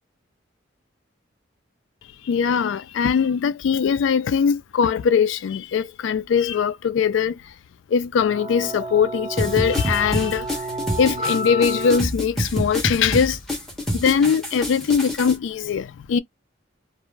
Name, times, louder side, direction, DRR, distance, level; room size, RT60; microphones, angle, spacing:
voice 1, 2.2-7.5 7.9-10.7 11.0-13.4 13.9-16.2, left 6 dB, 70° left, 0.3 m, -21 dB
sound 1, 8.3-12.0, right 1 dB, 35° right, 0.8 m, -30 dB
sound 2, 9.4-15.3, equal, ahead, 0.9 m, -27 dB
2.5 x 2.1 x 3.1 m
head